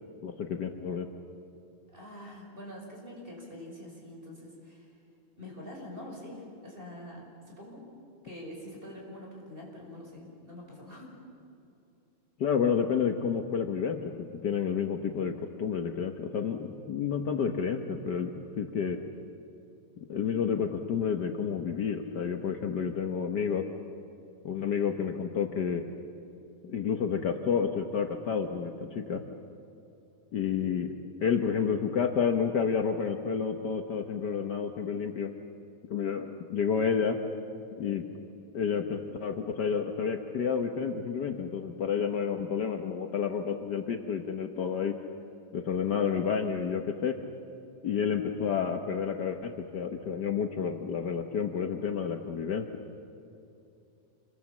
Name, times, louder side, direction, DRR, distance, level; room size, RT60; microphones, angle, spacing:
voice 1, 0.2-1.1 12.4-15.3 15.6-19.0 20.1-23.7 24.4-25.8 26.6-29.2 30.3-30.9 31.2-35.3 35.9-37.2 37.7-38.0 38.5-45.0 45.5-47.2 47.8-52.8, left 6 dB, 85° left, 5 dB, 0.9 m, -30 dB
voice 2, 1.9-4.9 5.4-7.8 8.2-11.2, left 1 dB, 15° right, -1 dB, 5.6 m, -45 dB
28.0 x 23.0 x 7.3 m, 2.8 s
omnidirectional pair, 3.4 m